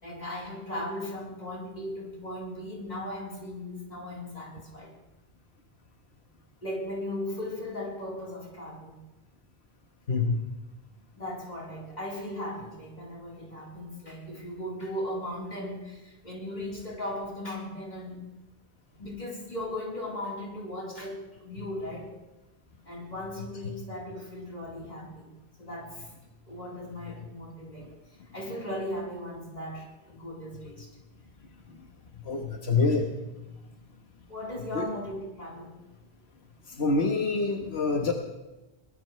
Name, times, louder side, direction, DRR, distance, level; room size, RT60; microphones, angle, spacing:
voice 1, 0.0-4.9 6.6-9.0 11.2-18.3 19.0-22.1 22.8-25.3 25.6-26.1 26.5-27.9 28.3-30.9 34.3-35.8, left 1 dB, 45° left, -4 dB, 4.2 m, -37 dB
voice 2, 10.1-10.4 23.6-23.7 31.7-31.8 32.2-33.1 33.4-33.5 34.7-34.9 36.7-38.1, left 4 dB, 90° left, 2 dB, 1.6 m, -26 dB
23.0 x 19.0 x 3.3 m, 1.1 s
omnidirectional pair, 1.0 m